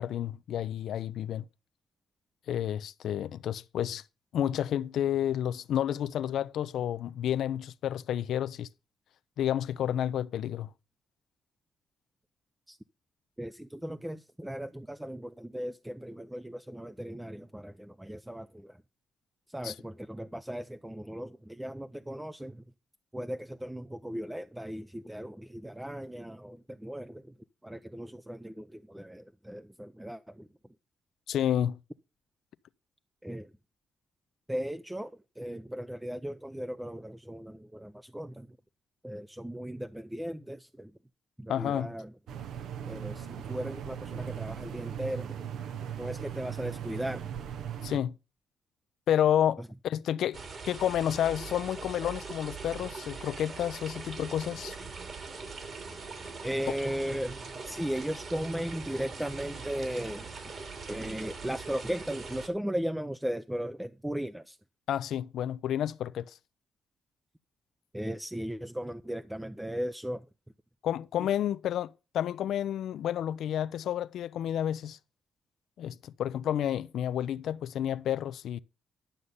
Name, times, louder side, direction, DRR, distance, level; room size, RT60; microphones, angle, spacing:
voice 1, 0.0-1.4 2.5-4.0 4.3-8.7 9.4-10.7 19.6-19.7 31.3-31.8 41.5-41.9 47.8-48.1 49.1-50.4 50.7-54.7 64.9-66.3 70.8-75.0 75.8-78.6, left 10 dB, 75° left, 0.5 m, -30 dB
voice 2, 13.4-18.8 19.5-22.6 23.1-27.3 27.6-30.5 33.2-33.5 34.5-38.6 39.0-40.9 41.4-42.1 42.8-45.4 46.0-47.3 49.6-49.7 56.4-60.3 60.9-64.6 67.9-70.3, equal, 5° right, 0.6 m, -37 dB
sound 1, 42.3-48.0, right 9 dB, 75° right, 1.0 m, -38 dB
sound 2, 50.3-62.5, right 4 dB, 45° right, 2.9 m, -42 dB
11.5 x 6.6 x 5.5 m
cardioid pair, 90°, 0 cm